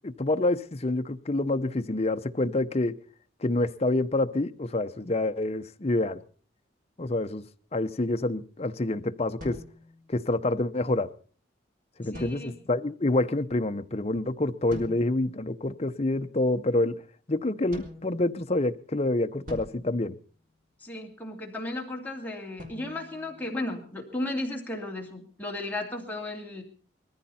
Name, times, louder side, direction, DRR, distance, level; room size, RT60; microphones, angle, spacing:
voice 1, 0.0-2.9 3.4-6.2 7.0-7.4 7.7-9.6 10.1-11.1 12.0-17.0 17.3-20.2, left 2 dB, 30° left, 8 dB, 0.7 m, -27 dB
sound 1, 9.4-10.5 12.1-12.9 14.7-15.4 17.7-18.8 19.5-20.9 22.6-24.1, left 1 dB, 45° right, 3.5 m, -46 dB
voice 2, 12.0-12.5 20.8-26.6, left 1 dB, 10° left, -1 dB, 2.6 m, -35 dB
21.5 x 14.5 x 4.2 m, 0.42 s
head